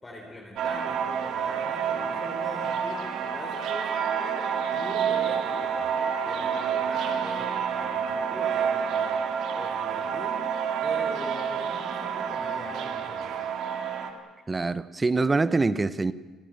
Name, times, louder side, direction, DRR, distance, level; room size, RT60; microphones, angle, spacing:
voice 1, 0.0-5.9 6.2-9.2 9.5-10.4 10.8-13.3, left 1 dB, 15° left, -1 dB, 3.5 m, -42 dB
sound 1, 0.6-14.1, right 7 dB, 60° right, 2.5 m, -28 dB
voice 2, 14.5-16.1, right 3 dB, 15° right, 16 dB, 0.7 m, -24 dB
28.0 x 16.0 x 9.0 m, 1.4 s
cardioid pair, 150°, 0 cm